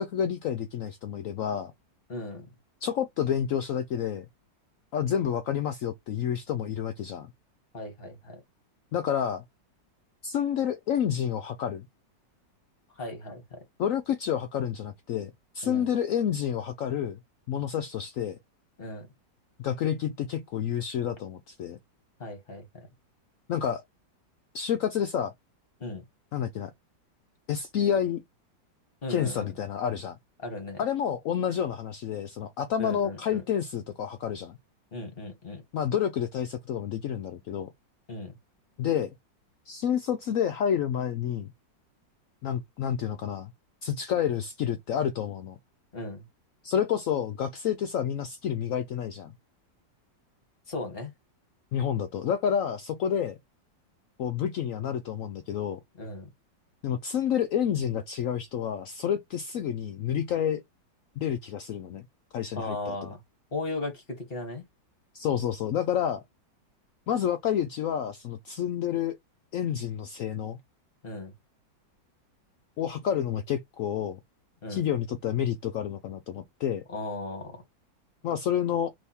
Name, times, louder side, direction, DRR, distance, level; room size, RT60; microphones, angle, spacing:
voice 1, 0.0-1.7 2.8-4.3 4.9-7.3 8.9-9.4 10.2-11.9 13.8-17.2 17.5-18.4 19.6-21.8 23.5-23.8 24.5-25.3 26.3-26.7 27.5-28.2 29.1-30.2 30.8-34.6 35.7-37.7 38.8-39.1 39.7-41.5 42.4-43.5 43.8-45.6 46.6-49.3 51.7-53.4 54.2-55.8 56.8-60.6 61.2-62.1 62.3-63.0 65.1-66.2 67.1-69.2 69.5-70.6 72.8-74.2 74.7-76.8 78.2-78.9, left 9 dB, 80° left, 0.7 m, -29 dB
voice 2, 2.1-2.5 7.7-8.4 13.0-13.6 15.6-15.9 18.8-19.1 22.2-22.9 25.8-26.0 29.0-29.5 30.4-30.8 32.8-33.4 34.9-35.6 38.1-38.3 45.9-46.2 50.7-51.1 56.0-56.3 62.5-63.2 63.5-64.6 71.0-71.3 74.6-74.8 76.9-77.6, left 2 dB, 30° left, 1.6 m, -36 dB
3.4 x 3.1 x 4.2 m
omnidirectional pair, 2.0 m